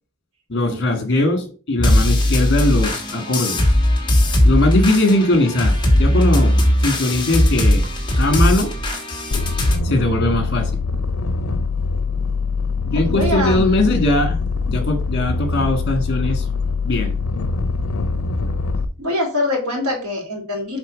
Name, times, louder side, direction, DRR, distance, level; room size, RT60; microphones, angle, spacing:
voice 1, 0.5-3.6 4.4-7.8 8.2-8.7 9.8-10.7 12.9-14.4 14.7-16.4 16.8-17.2, left 2 dB, 50° left, 5 dB, 1.8 m, -20 dB
sound 1, 1.8-9.8, left 1 dB, 20° left, 1.3 m, -18 dB
sound 2, 9.3-18.8, left 4 dB, 75° left, 0.6 m, -23 dB
voice 2, 12.9-13.6 19.0-20.8, left 2 dB, 85° right, 1 dB, 2.6 m, -24 dB
7.2 x 3.6 x 5.2 m, 0.38 s
head